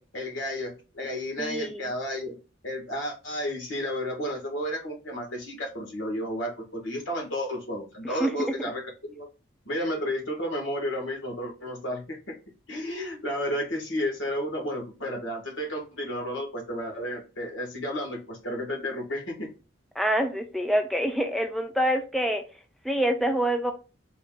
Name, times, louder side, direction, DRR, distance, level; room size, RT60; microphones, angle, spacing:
voice 1, 0.0-2.4 2.6-9.3 9.6-12.3 12.7-19.5, equal, 80° left, 1.5 m, -32 dB
voice 2, 1.4-1.9 8.0-8.7 20.0-22.4 22.8-23.7, right 1 dB, ahead, 0.3 m, -26 dB
4.1 x 2.3 x 3.7 m
head